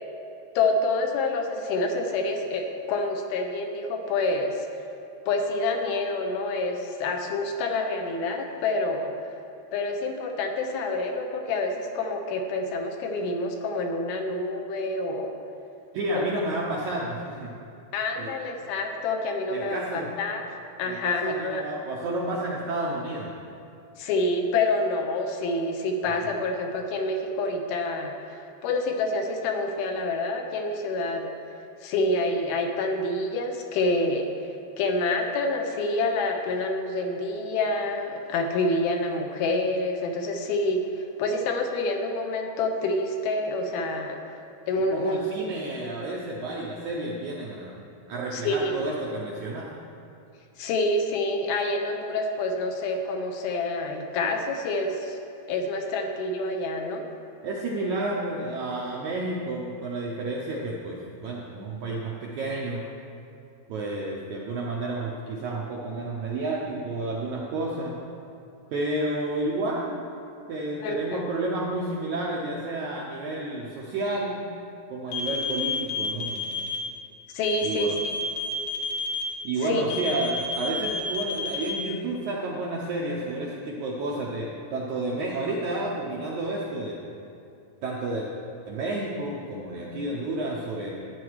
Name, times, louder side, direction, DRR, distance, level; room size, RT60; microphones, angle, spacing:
voice 1, 0.6-4.8 5.3-9.1 9.7-15.3 16.1-16.3 17.9-20.4 20.8-21.6 24.0-31.4 31.8-34.3 34.8-44.2 44.7-45.2 48.3-48.7 50.6-55.2 55.5-57.0 70.8-71.2 77.3-77.9 79.6-79.8, left 2 dB, 75° left, 3 dB, 2.7 m, -27 dB
voice 2, 15.9-17.5 18.2-18.5 19.5-20.1 20.8-23.3 44.9-47.8 48.1-49.7 57.4-62.8 63.7-67.9 68.7-70.0 70.5-74.4 74.9-76.4 77.6-78.0 79.4-87.1 87.8-88.3 88.7-91.0, right 2 dB, 75° right, -3 dB, 1.7 m, -31 dB
sound 1, 75.1-76.8 77.4-79.2 79.9-81.7, left 5 dB, 60° left, 2.2 m, -30 dB
12.5 x 8.8 x 4.7 m, 2.7 s
omnidirectional pair, 4.5 m